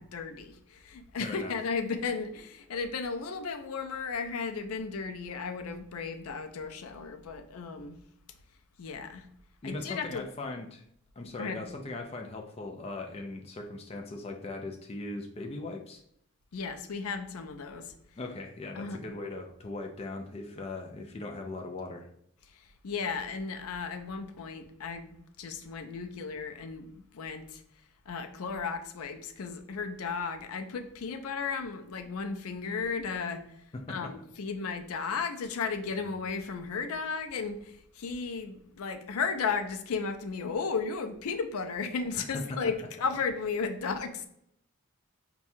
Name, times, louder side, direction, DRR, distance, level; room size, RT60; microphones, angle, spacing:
voice 1, 0.0-8.0 8.8-9.3 9.6-10.3 11.4-11.7 16.5-17.9 18.8-19.0 22.5-27.6 28.1-33.6 33.9-44.3, left 5 dB, 85° left, 7 dB, 0.5 m, -35 dB
voice 2, 1.2-1.5 9.6-10.8 11.2-16.0 18.2-22.1 33.7-34.1 42.2-42.6, left 2 dB, 30° left, 3 dB, 0.3 m, -39 dB
5.7 x 2.3 x 2.7 m, 0.72 s
head